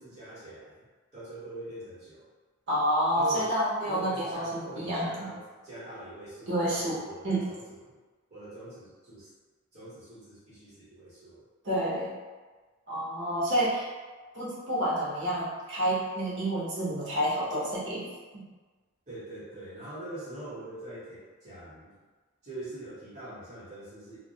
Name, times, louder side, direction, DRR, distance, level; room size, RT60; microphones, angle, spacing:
voice 1, 0.0-2.3 3.1-3.6 3.8-8.0 8.3-9.3 9.7-11.4 19.1-22.0 22.4-24.2, right 2 dB, 35° right, -13 dB, 1.0 m, -43 dB
voice 2, 2.7-5.1 6.5-7.5 11.6-12.1 12.9-13.9 14.3-18.1 18.3-18.4, right 1 dB, 55° right, -7 dB, 0.8 m, -29 dB
2.3 x 2.0 x 2.6 m, 1.3 s
head